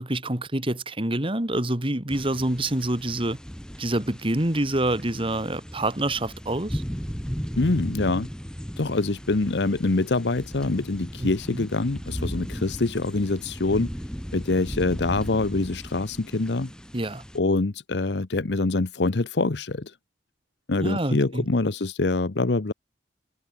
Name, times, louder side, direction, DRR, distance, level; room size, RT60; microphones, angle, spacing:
voice 1, 0.0-3.4 3.8-6.8 11.2-11.7 16.9-17.2 20.8-21.4, right 1 dB, 30° right, 2.4 m, -27 dB
sound 1, 2.1-17.4, equal, 5° left, 3.3 m, -36 dB
voice 2, 7.6-8.3 8.8-13.9 14.3-16.7 17.3-19.9 20.7-22.7, left 3 dB, 75° left, 0.9 m, -25 dB
head